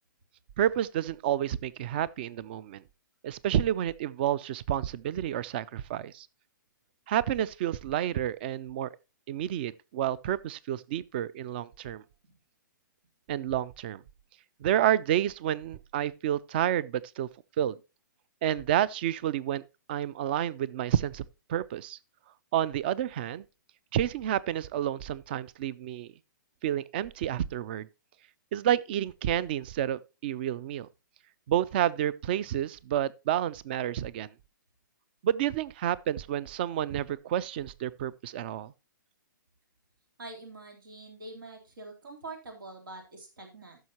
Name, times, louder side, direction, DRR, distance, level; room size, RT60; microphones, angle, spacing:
voice 1, 0.6-2.8 3.2-6.3 7.1-8.9 9.3-12.0 13.3-14.0 14.6-17.3 17.6-17.8 18.4-19.6 19.9-21.2 21.5-22.0 22.5-23.4 23.9-26.1 26.6-27.9 28.5-30.9 31.5-34.3 35.2-38.7, right 11 dB, 30° right, 0.4 m, -29 dB
voice 2, 40.2-43.8, right 2 dB, 90° right, 3.4 m, -45 dB
14.0 x 6.4 x 2.9 m
hypercardioid pair, 165°, 11 cm